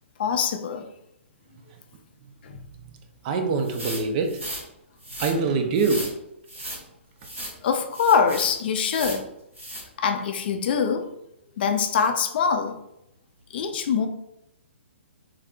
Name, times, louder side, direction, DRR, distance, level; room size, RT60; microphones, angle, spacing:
voice 1, 0.2-0.9 2.4-2.6 7.6-9.3 10.0-11.1 11.6-12.8 13.5-14.1, left 6 dB, 50° left, 6 dB, 0.4 m, -23 dB
voice 2, 3.2-4.4 5.2-6.2, right 4 dB, 40° right, 5 dB, 0.5 m, -24 dB
sound 1, 3.6-4.6 5.0-5.3 5.7-6.1 6.5-6.8 7.2-7.5 7.9-8.5 8.8-9.2 9.5-9.8, right 1 dB, 85° right, 1.3 m, -35 dB
3.5 x 3.3 x 2.2 m, 0.82 s
figure-of-eight pair, 130°, 7 cm